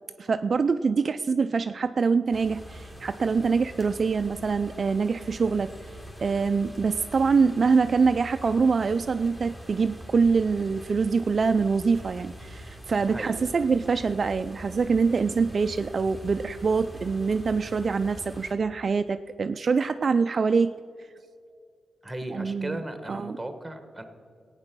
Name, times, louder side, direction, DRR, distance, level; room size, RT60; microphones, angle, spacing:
voice 1, 0.2-5.9 6.2-20.7 22.3-22.8 23.1-23.4, right 5 dB, 45° right, 9 dB, 0.3 m, -24 dB
sound 1, 2.3-18.5, equal, 15° left, 2.4 m, -43 dB
voice 2, 13.1-13.6 22.0-24.0, right 1 dB, 10° right, 8 dB, 1.3 m, -36 dB
15.0 x 8.9 x 6.0 m, 2.3 s
cardioid pair, 100°, 0 cm